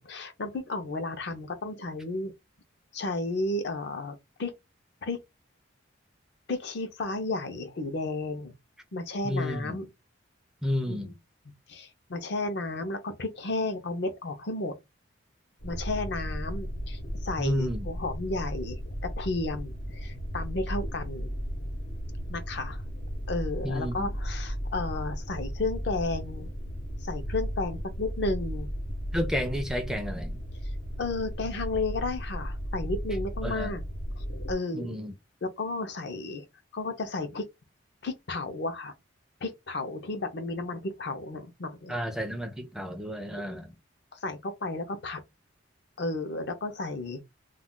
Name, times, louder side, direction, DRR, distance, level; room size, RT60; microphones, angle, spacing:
voice 1, 0.0-2.3 2.9-4.5 5.0-5.2 6.5-8.5 8.9-9.9 10.9-11.1 11.7-14.7 15.6-21.3 22.3-22.8 23.3-26.5 27.0-28.7 31.0-33.8 34.2-35.0 35.4-36.4 36.7-37.4 38.0-38.9 39.4-41.9 43.3-43.6 44.1-45.2 46.0-47.2, left 2 dB, 55° left, 0.5 m, -33 dB
voice 2, 9.2-9.8 10.6-11.1 17.4-17.9 23.6-24.1 29.1-30.4 33.4-33.7 34.7-35.1 41.9-43.7, left 1 dB, 5° right, 0.4 m, -31 dB
sound 1, 15.6-34.5, equal, 80° left, 1.0 m, -35 dB
2.3 x 2.2 x 3.6 m
head